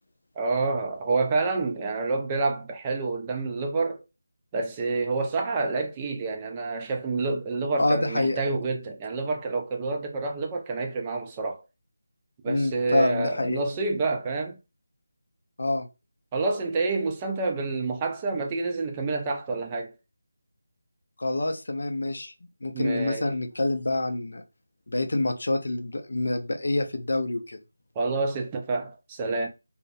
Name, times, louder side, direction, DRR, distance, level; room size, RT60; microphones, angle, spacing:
voice 1, 0.4-4.0 4.5-11.6 12.4-14.6 16.3-19.9 22.7-23.2 28.0-29.5, right 3 dB, 15° right, 0.4 m, -28 dB
voice 2, 7.8-8.4 12.5-13.6 15.6-15.9 21.2-22.3 22.6-24.4 24.9-27.6, left 2 dB, 55° left, 0.5 m, -27 dB
2.3 x 2.0 x 2.7 m
figure-of-eight pair, 160°, 0 cm